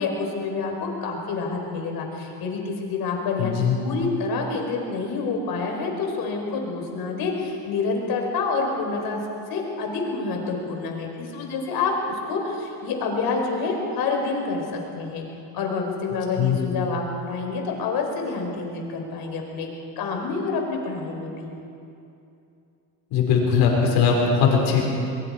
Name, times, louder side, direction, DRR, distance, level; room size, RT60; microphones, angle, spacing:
voice 1, 0.0-9.2 9.5-14.6 15.0-15.2 15.5-19.7 20.0-21.5, left 4 dB, 60° left, 1 dB, 4.9 m, -27 dB
voice 2, 3.4-3.8 16.4-16.6 23.1-24.8, left 6 dB, 85° left, -1 dB, 5.7 m, -20 dB
23.0 x 22.5 x 5.1 m, 2.7 s
cardioid pair, 115°, 41 cm